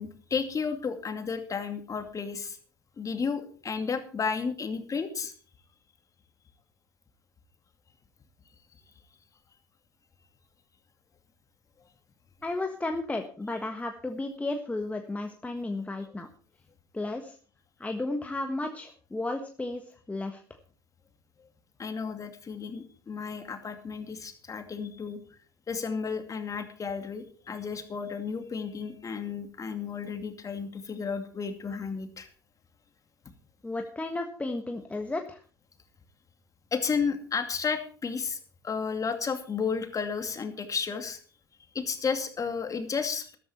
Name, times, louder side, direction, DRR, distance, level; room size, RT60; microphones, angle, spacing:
voice 1, 0.0-2.6 3.0-5.3 21.8-25.2 25.7-32.3 36.7-38.4 38.6-41.2 41.7-43.4, left 5 dB, 30° left, 7 dB, 2.5 m, -32 dB
voice 2, 12.4-16.3 16.9-17.4 17.8-19.8 20.1-20.4 33.6-35.4, left 2 dB, 10° left, 4 dB, 1.4 m, -33 dB
13.5 x 12.5 x 4.4 m, 0.41 s
hypercardioid pair, 70°, 12 cm